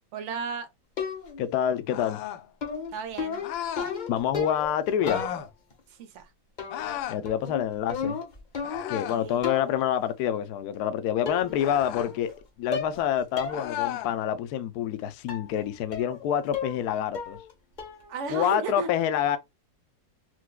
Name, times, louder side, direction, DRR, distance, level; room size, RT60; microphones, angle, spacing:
voice 1, 0.1-0.7 2.9-3.4 6.0-6.3 8.9-9.5 18.1-18.9, right 6 dB, 55° right, 0.8 m, -34 dB
sound 1, 1.0-1.5 2.6-4.8 5.1-5.7 6.6-7.0 7.3-9.1 9.4-9.8 10.7-10.8 11.3-11.7 12.0-12.4 12.7-13.0 13.4-13.6 14.0-14.1 15.3-15.5 15.9-16.2 16.5-16.9 17.1-17.5 17.8-18.1, left 5 dB, 50° left, 0.5 m, -34 dB
voice 2, 1.4-2.2 4.1-5.3 7.1-8.2 8.9-12.3 12.6-17.4 18.3-19.4, left 10 dB, 70° left, 0.9 m, -27 dB
sound 2, 1.9-2.5 3.4-3.9 5.0-5.5 6.7-7.2 8.6-9.3 11.5-12.1 13.5-14.1, left 11 dB, 90° left, 1.3 m, -34 dB
4.5 x 2.2 x 2.2 m
omnidirectional pair, 2.0 m